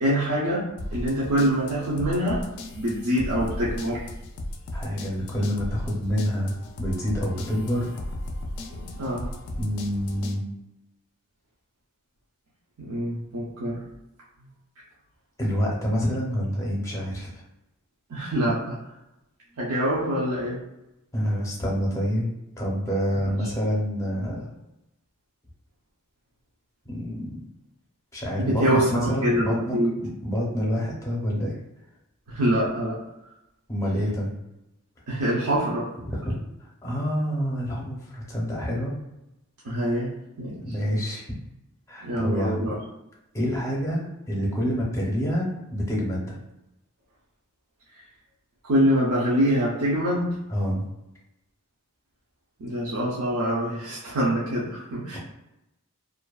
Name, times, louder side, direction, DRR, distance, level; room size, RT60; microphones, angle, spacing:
voice 1, 0.0-2.5 2.7-4.1 8.7-9.3 12.8-13.8 18.1-18.8 19.6-20.6 23.1-23.3 28.4-29.9 32.3-33.0 35.1-35.9 39.6-40.1 40.4-40.7 42.0-42.8 48.6-50.4 52.6-55.2, equal, 70° right, -7 dB, 0.6 m, -25 dB
sound 1, 0.8-10.4, left 1 dB, 75° left, 0.4 m, -36 dB
voice 2, 4.7-6.5 6.8-8.0 9.6-10.4 15.4-17.4 21.1-22.3 22.6-24.5 26.9-27.4 28.1-31.5 33.7-34.3 36.0-36.4 36.8-38.9 40.6-41.4 41.9-42.6 43.3-46.4 50.5-50.8, equal, 15° left, -4 dB, 0.6 m, -27 dB
2.5 x 2.2 x 2.3 m, 0.91 s
head